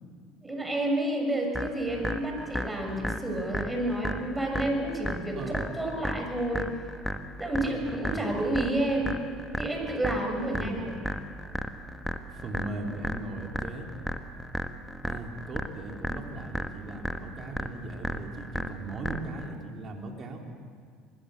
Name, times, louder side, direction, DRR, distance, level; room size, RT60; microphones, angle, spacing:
voice 1, 0.4-5.4 5.8-6.7 7.4-9.2 9.5-10.8, right 1 dB, 15° right, 2 dB, 6.6 m, -30 dB
sound 1, 1.5-19.5, equal, ahead, 1.5 m, -35 dB
voice 2, 8.1-8.4 10.6-10.9 11.6-11.9 12.3-13.9 15.0-20.4, right 2 dB, 45° right, 1 dB, 3.9 m, -38 dB
25.0 x 21.0 x 6.9 m, 2.1 s
hypercardioid pair, 75°, 0 cm